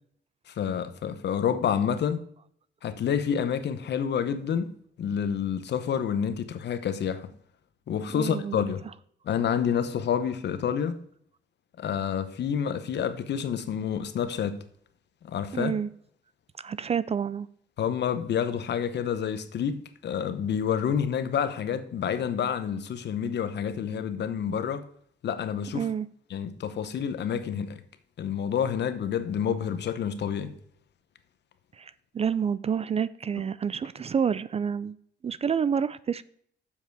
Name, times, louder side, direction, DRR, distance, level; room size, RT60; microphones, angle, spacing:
voice 1, 0.5-2.3 2.8-4.7 5.0-7.3 7.9-8.8 9.2-11.0 11.8-14.6 15.2-15.7 17.8-24.9 25.2-25.8 26.3-27.8 28.2-30.5, left 8 dB, 60° left, 0.9 m, -28 dB
voice 2, 8.1-8.6 15.5-15.9 16.6-17.5 25.7-26.1 31.8-35.0 35.2-36.2, right 7 dB, 30° right, 0.4 m, -28 dB
7.3 x 6.9 x 4.7 m
cardioid pair, 90°, 20 cm